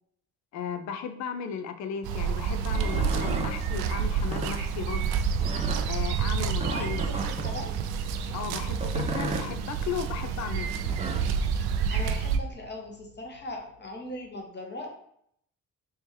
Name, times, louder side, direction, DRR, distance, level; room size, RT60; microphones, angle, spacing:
voice 1, 0.5-5.1 5.9-7.1 8.3-10.7, left 7 dB, 40° left, 8 dB, 0.5 m, -35 dB
sound 1, 2.0-12.4, right 6 dB, 60° right, 0.5 m, -29 dB
sound 2, 2.6-3.5 4.2-4.5 5.4-5.8 6.6-7.5 8.7-9.5 10.7-11.3, right 2 dB, 15° right, 0.6 m, -34 dB
sound 3, 6.1-14.4, equal, 85° right, 0.8 m, -45 dB
voice 2, 6.7-7.7 11.9-14.9, left 1 dB, 25° left, 1 dB, 1.0 m, -39 dB
3.3 x 3.1 x 3.0 m, 0.70 s
hypercardioid pair, 50°, 43 cm